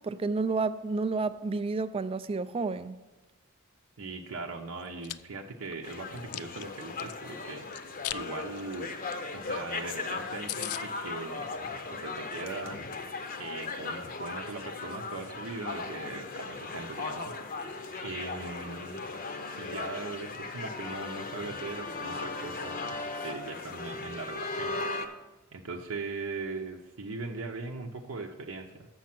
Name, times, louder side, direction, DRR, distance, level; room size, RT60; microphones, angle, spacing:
voice 1, 0.0-3.0, right 3 dB, 25° right, 0.3 m, -30 dB
voice 2, 4.0-8.9 9.3-11.5 11.9-12.8 13.4-19.0 19.6-22.8 23.2-25.2 25.5-28.9, right 3 dB, 70° right, 0.7 m, -40 dB
Chewing mastication, 4.8-5.1 5.7-7.1 7.7-8.2 8.6-8.7 9.1-9.2 9.5-9.6 9.9-10.0 10.2-10.3 10.5-10.8, left 14 dB, 80° left, 0.3 m, -37 dB
sound 1, 5.8-25.1, left 3 dB, 40° left, 0.7 m, -37 dB
7.4 x 6.4 x 5.9 m
head